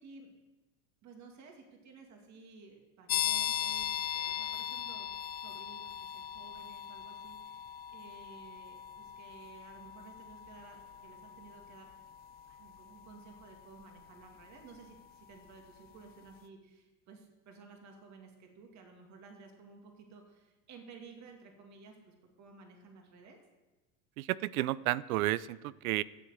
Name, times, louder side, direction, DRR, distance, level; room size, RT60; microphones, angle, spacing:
voice 1, 0.0-0.3 1.0-11.9 12.5-23.4, right 4 dB, 40° right, 3 dB, 2.4 m, -55 dB
sound 1, 3.1-15.6, left 10 dB, 25° left, 0.3 m, -39 dB
voice 2, 24.2-26.0, right 16 dB, 75° right, 20 dB, 0.6 m, -32 dB
12.0 x 7.5 x 8.0 m, 1.2 s
supercardioid pair, 120°, 43 cm